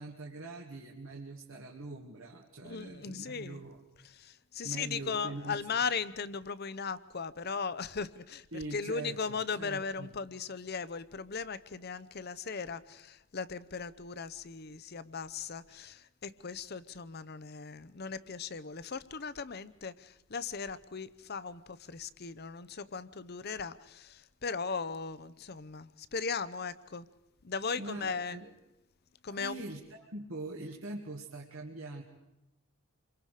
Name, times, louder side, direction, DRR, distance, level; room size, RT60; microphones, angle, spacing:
voice 1, 0.0-3.8 4.6-5.6 8.5-10.1 27.8-28.5 29.3-32.0, right 2 dB, 70° right, 2.0 m, -43 dB
voice 2, 2.6-3.6 4.0-8.5 8.7-27.1 27.4-28.4 29.2-29.6, left 5 dB, 45° left, 0.7 m, -38 dB
28.0 x 23.5 x 5.0 m
head